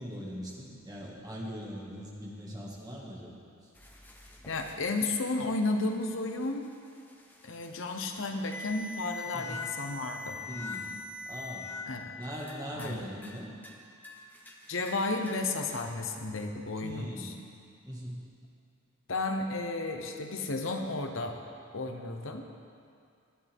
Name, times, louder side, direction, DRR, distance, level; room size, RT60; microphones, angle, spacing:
voice 1, 0.0-3.3 3.6-3.7 9.3-9.6 10.5-10.9 11.3-11.7 12.2-13.5 16.8-17.3 17.8-18.2, equal, 20° right, -4 dB, 1.9 m, -40 dB
sound 1, 3.8-11.8 12.2-13.0 13.2-13.8 14.0-15.9, left 4 dB, 10° left, 1.0 m, -44 dB
voice 2, 4.5-6.7 7.4-10.4 11.9-12.2 12.7-13.0 14.7-17.3 19.1-21.4 21.7-22.4, left 2 dB, 70° left, 4 dB, 1.0 m, -33 dB
19.5 x 11.0 x 3.6 m, 2.4 s
head